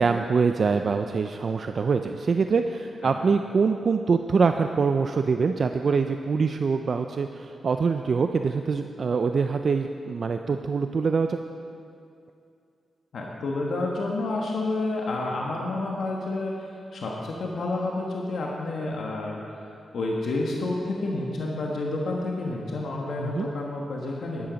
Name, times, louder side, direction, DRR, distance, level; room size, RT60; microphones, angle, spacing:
voice 1, 0.0-11.4 23.2-23.5, right 5 dB, 50° right, 7 dB, 0.4 m, -24 dB
voice 2, 13.1-19.7 19.9-24.5, left 2 dB, 70° left, -2 dB, 1.3 m, -29 dB
11.0 x 10.5 x 5.2 m, 2.5 s
cardioid pair, 100°, 0 cm